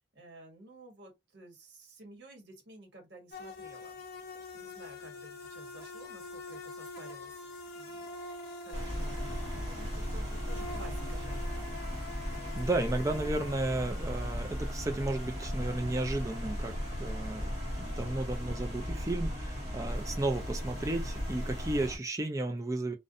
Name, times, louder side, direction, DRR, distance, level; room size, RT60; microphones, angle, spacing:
voice 1, 0.1-4.0 4.5-7.5 7.7-11.7, right 1 dB, 65° right, 1.0 m, -53 dB
sound 1, 3.3-21.9, left 2 dB, 55° left, 0.6 m, -47 dB
sound 2, 8.7-22.0, equal, 35° right, 1.4 m, -36 dB
voice 2, 12.5-17.5 17.8-22.9, right 2 dB, 15° right, 0.4 m, -33 dB
2.5 x 2.1 x 2.5 m
head